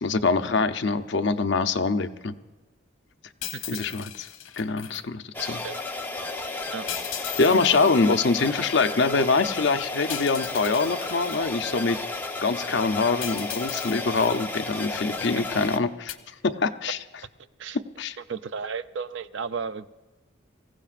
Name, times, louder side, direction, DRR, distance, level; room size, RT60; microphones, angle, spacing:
voice 1, 0.0-2.3 3.7-4.3 4.6-5.6 7.4-12.0 12.4-16.2 16.4-17.0 18.0-18.2, left 4 dB, 60° left, 8 dB, 0.6 m, -24 dB
sound 1, 3.4-5.0 6.9-8.0 10.1-11.4 13.2-14.4 16.1-16.2, left 11 dB, 85° left, 1.0 m, -37 dB
sound 2, 5.3-15.8, left 3 dB, 10° left, 0.8 m, -33 dB
voice 2, 5.4-5.8 6.7-6.9 7.5-7.6 17.6-17.8 18.3-19.9, right 5 dB, 65° right, 12 dB, 0.5 m, -34 dB
25.0 x 16.0 x 2.5 m, 1.2 s
head